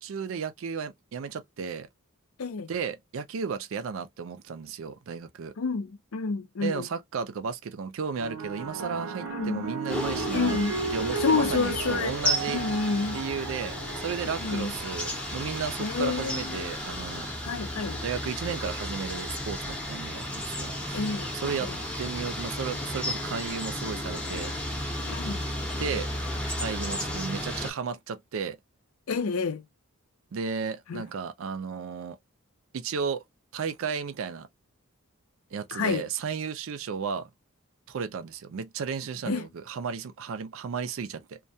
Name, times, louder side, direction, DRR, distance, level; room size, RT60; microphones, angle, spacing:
voice 1, 0.0-1.9 2.7-5.5 6.6-10.6 10.9-12.6 13.1-17.3 18.0-21.0 21.4-21.7 22.0-24.5 25.8-26.1 26.6-28.6 30.3-32.2 32.7-33.2 33.5-34.5 35.5-37.3 37.9-41.4, right 6 dB, 65° right, 0.4 m, -34 dB
voice 2, 2.4-2.7 5.6-6.9 9.3-9.7 10.3-10.8 11.2-12.2 12.4-13.2 14.2-14.7 15.8-16.7 17.4-18.0 20.9-21.3 21.6-21.8 25.1-25.5 29.1-29.6 30.9-31.1 35.7-36.1 39.3-39.5, left 4 dB, 75° left, 0.5 m, -29 dB
sound 1, 8.2-16.8 17.7-18.1, right 5 dB, 90° right, 0.7 m, -36 dB
sound 2, 9.9-27.7, left 1 dB, 5° left, 0.6 m, -33 dB
2.2 x 2.1 x 2.6 m
head